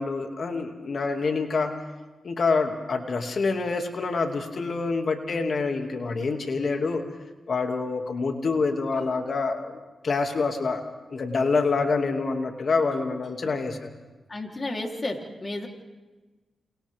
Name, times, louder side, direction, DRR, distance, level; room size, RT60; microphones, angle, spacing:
voice 1, 0.0-1.7 2.2-7.0 7.5-10.8 11.1-13.9, left 4 dB, 60° left, 4 dB, 2.4 m, -26 dB
voice 2, 14.3-15.7, left 2 dB, 35° left, 1 dB, 3.6 m, -32 dB
29.0 x 28.0 x 3.6 m, 1.2 s
cardioid pair, 50°, 0 cm